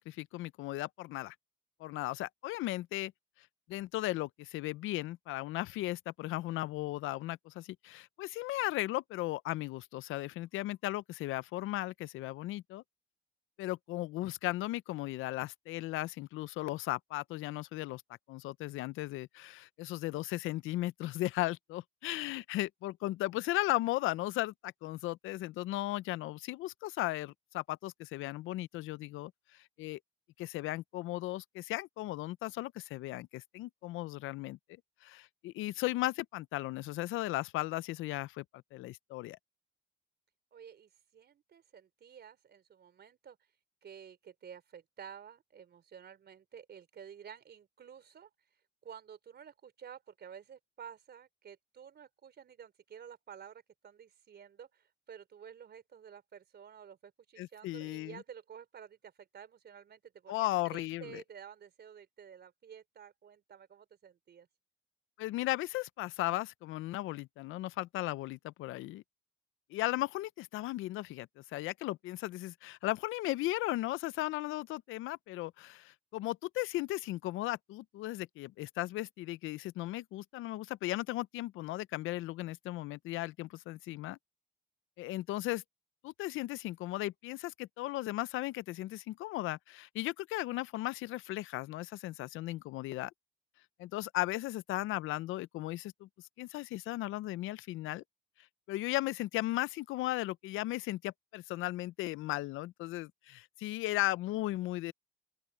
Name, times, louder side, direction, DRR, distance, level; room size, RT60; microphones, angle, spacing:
voice 1, 0.0-1.3 1.8-3.1 3.7-12.8 13.6-18.0 18.3-29.3 29.8-30.0 30.4-34.6 35.0-38.4 38.7-39.4 57.4-58.2 60.3-61.2 65.2-69.0 69.7-84.2 85.0-85.6 86.0-93.1 93.8-96.1 96.4-98.0 98.7-104.9, left 17 dB, 90° left, 0.5 m, -36 dB
voice 2, 40.5-43.4 43.8-64.5, right 8 dB, 55° right, 4.3 m, -52 dB
open air
cardioid pair, 90°, 20 cm